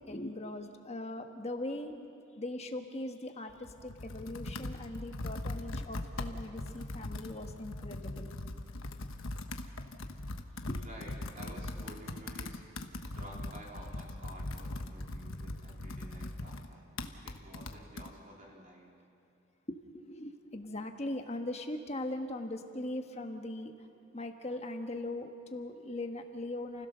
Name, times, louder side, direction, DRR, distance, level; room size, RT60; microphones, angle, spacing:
voice 1, 0.0-1.9 2.3-8.3 10.7-10.8 19.7-23.7 24.1-26.9, left 1 dB, 30° left, 5 dB, 1.4 m, -40 dB
Computer keyboard, 3.5-18.1, left 2 dB, 75° left, 1.2 m, -41 dB
voice 2, 10.8-12.6 13.1-17.0 17.2-18.9, right 1 dB, 40° right, -3 dB, 3.7 m, -51 dB
29.5 x 16.5 x 6.8 m, 2.5 s
head